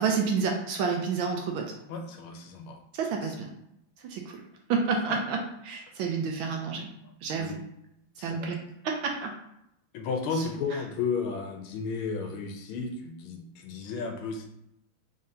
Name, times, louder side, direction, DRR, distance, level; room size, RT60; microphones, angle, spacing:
voice 1, 0.0-1.7 2.9-3.5 4.0-4.4 4.7-6.9 7.2-7.6 8.2-8.6 8.8-9.3, right 5 dB, 75° right, 2 dB, 1.3 m, -29 dB
voice 2, 1.9-2.8 3.2-3.4 7.4-7.6 8.2-8.6 9.9-14.5, left 5 dB, 80° left, 3 dB, 1.4 m, -33 dB
3.8 x 3.8 x 2.7 m, 0.79 s
omnidirectional pair, 2.4 m